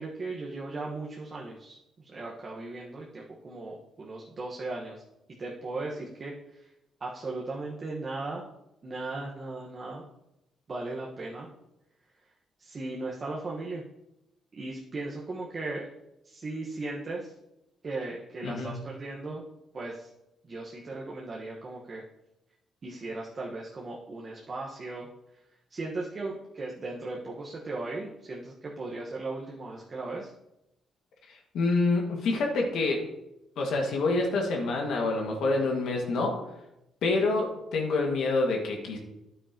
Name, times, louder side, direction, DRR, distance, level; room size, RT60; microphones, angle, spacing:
voice 1, 0.0-5.0 5.4-6.7 7.0-8.4 8.8-10.1 10.7-11.5 12.6-13.8 14.5-15.9 16.2-17.3 17.8-19.4 19.7-20.1 20.4-22.0 22.8-25.1 25.7-30.3, right 2 dB, 40° right, -3 dB, 1.4 m, -37 dB
voice 2, 31.3-33.0 33.6-36.4 37.0-39.0, left 3 dB, 75° left, 1 dB, 2.0 m, -27 dB
9.7 x 9.0 x 3.0 m, 0.87 s
cardioid pair, 90°, 0 cm